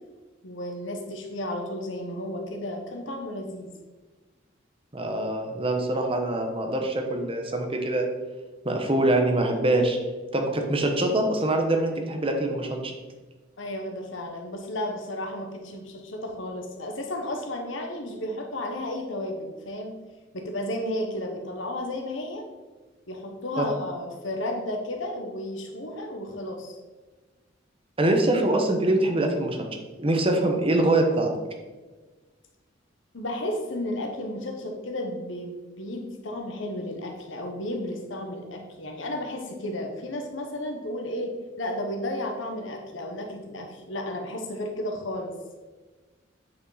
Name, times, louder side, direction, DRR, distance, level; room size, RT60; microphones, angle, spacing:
voice 1, 0.4-3.7 13.6-20.0 20.3-22.5 23.1-26.8 33.1-45.4, left 1 dB, 70° left, 3 dB, 1.1 m, -33 dB
voice 2, 4.9-8.1 8.6-10.0 10.3-12.9 23.6-23.7 28.0-29.6 30.0-31.3, right 1 dB, 30° right, 3 dB, 1.0 m, -24 dB
8.5 x 5.3 x 4.1 m, 1.3 s
head